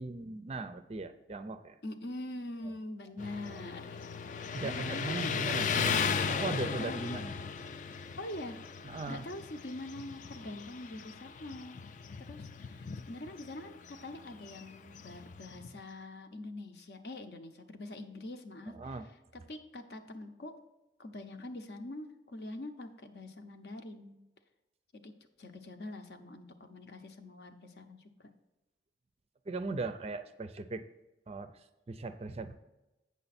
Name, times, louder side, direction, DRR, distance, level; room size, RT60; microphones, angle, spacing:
voice 1, 0.0-1.8 3.4-3.6 4.5-7.3 8.8-9.2 18.7-19.1 29.5-30.8 31.3-32.6, right 3 dB, 35° right, 10 dB, 0.4 m, -39 dB
voice 2, 1.8-4.0 4.6-5.4 6.8-7.2 8.2-8.6 9.1-11.8 12.2-19.0 19.5-20.6 21.0-24.2 24.9-25.1 25.4-28.3, left 1 dB, 60° left, 7 dB, 0.8 m, -44 dB
Motorcycle, 3.2-15.8, left 6 dB, 45° left, 0.3 m, -37 dB
8.4 x 6.8 x 4.2 m, 1.0 s
head